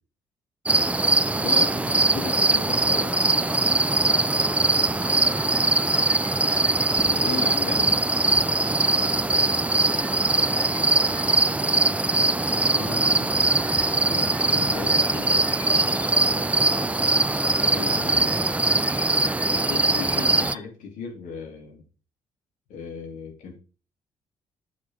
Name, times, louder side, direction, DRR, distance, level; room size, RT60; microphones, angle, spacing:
sound 1, 0.7-20.5, right 2 dB, 10° right, 0.4 m, -22 dB
voice 1, 1.3-3.1 7.0-8.0 12.6-13.5 13.9-15.5 17.6-18.5 19.5-21.8 22.7-23.6, left 5 dB, 65° left, 1 dB, 2.9 m, -36 dB
voice 2, 2.1-5.6 10.4-11.4 14.8-17.4, left 5 dB, 45° left, 4 dB, 1.2 m, -42 dB
sound 2, 2.6-20.6, left 2 dB, 85° left, 2.2 m, -42 dB
7.3 x 6.1 x 4.8 m, 0.36 s
figure-of-eight pair, 45°, 14 cm